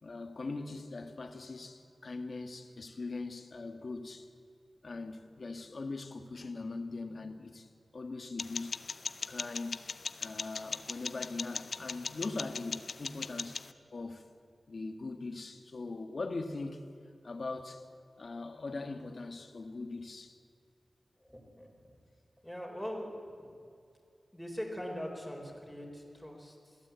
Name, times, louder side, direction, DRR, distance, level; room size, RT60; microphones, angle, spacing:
voice 1, 0.0-4.3 4.8-8.8 9.3-9.8 10.2-13.6 13.9-14.3 14.7-16.8 17.2-17.8 18.2-20.4, left 3 dB, 55° left, 1.6 m, -41 dB
sound 1, 8.4-13.7, left 5 dB, 75° left, 0.6 m, -40 dB
voice 2, 21.2-22.0 22.4-23.1 23.4-23.5 24.3-26.8, equal, 5° left, 4.3 m, -42 dB
22.0 x 16.0 x 8.2 m
wide cardioid pair, 105°, 0 cm